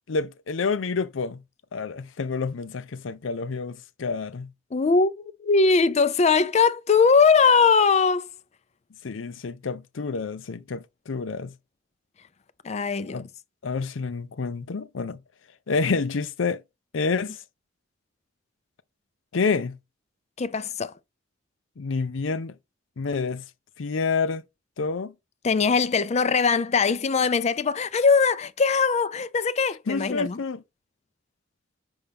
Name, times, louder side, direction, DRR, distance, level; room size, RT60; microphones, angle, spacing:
voice 1, 0.1-1.4 1.7-4.5 9.0-11.5 13.1-13.3 13.6-15.2 15.7-16.6 16.9-17.4 19.3-19.8 21.8-22.6 23.0-23.4 23.8-24.4 24.8-25.1 29.9-30.6, left 4 dB, 90° left, 0.6 m, -28 dB
voice 2, 4.7-8.3 12.6-13.2 20.4-20.9 25.4-30.4, left 5 dB, 35° left, 0.4 m, -21 dB
5.6 x 5.3 x 3.5 m
head